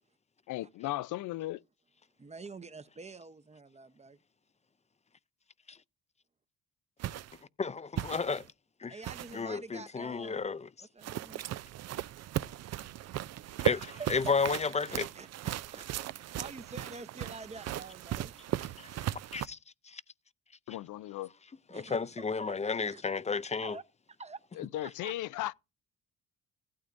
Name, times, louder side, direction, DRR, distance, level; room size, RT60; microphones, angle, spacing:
voice 1, 0.5-1.6 20.7-21.3 24.6-25.5, left 15 dB, 85° left, 0.5 m, -36 dB
voice 2, 2.2-4.2 8.9-10.4 10.8-11.4 13.7-15.9 16.2-18.3 21.7-22.5 22.9-23.8 24.2-25.1, right 4 dB, 20° right, 0.8 m, -47 dB
sound 1, 7.0-7.4 8.0-8.5 9.0-9.4 11.0-19.5, right 13 dB, 60° right, 0.5 m, -37 dB
voice 3, 7.6-8.4 8.8-8.9 9.3-10.7 13.6-13.8 14.1-15.1 18.8-18.9 19.3-19.6 19.9-20.0 21.7-23.8, left 5 dB, 20° left, 0.5 m, -32 dB
15.5 x 12.5 x 2.6 m
cardioid pair, 90°, 30 cm